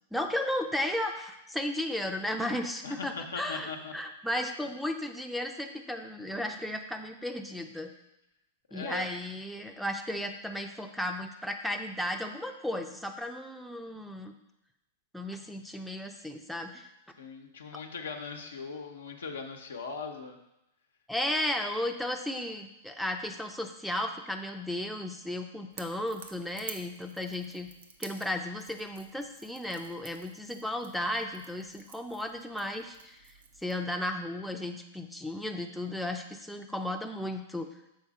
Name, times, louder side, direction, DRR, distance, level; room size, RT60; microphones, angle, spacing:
voice 1, 0.1-7.9 8.7-14.3 15.1-16.9 21.1-27.7 28.0-33.2 33.6-37.7, left 1 dB, ahead, 3 dB, 0.6 m, -34 dB
voice 2, 2.8-3.9 8.7-9.1 17.2-20.4, left 4 dB, 80° left, 3 dB, 0.9 m, -39 dB
Crackle / Crack, 25.7-33.8, right 5 dB, 75° right, 0.6 m, -50 dB
6.7 x 4.1 x 4.7 m, 0.88 s
hypercardioid pair, 100°, 0 cm